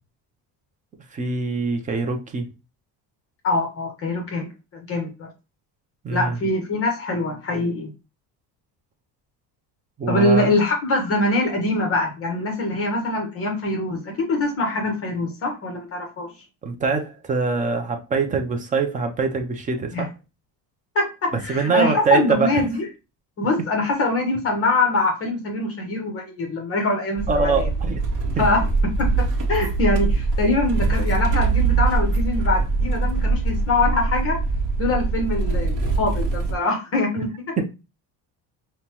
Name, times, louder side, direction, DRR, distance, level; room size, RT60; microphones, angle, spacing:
voice 1, 1.1-2.5 6.0-6.4 10.0-10.5 16.6-20.1 21.5-22.6 27.3-28.0 28.4-28.5 37.6-37.7, right 4 dB, 20° right, 0.4 m, -23 dB
voice 2, 3.4-5.3 6.1-7.9 10.1-16.3 19.9-20.0 20.9-22.9 23.4-27.7 28.4-34.4 34.8-37.5, left 2 dB, 35° left, 1.0 m, -23 dB
sound 1, 27.2-36.6, right 3 dB, 50° right, 0.9 m, -22 dB
5.3 x 2.1 x 2.9 m
cardioid pair, 170°, 41 cm